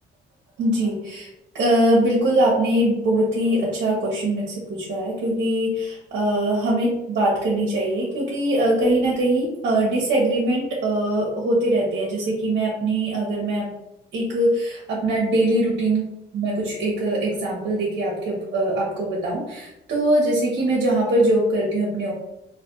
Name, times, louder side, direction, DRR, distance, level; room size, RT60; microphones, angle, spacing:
voice 1, 0.6-1.3 1.5-13.7 14.1-16.0 16.3-22.1, right 1 dB, 70° right, -5 dB, 0.9 m, -22 dB
3.2 x 2.5 x 2.7 m, 0.89 s
cardioid pair, 90°, 20 cm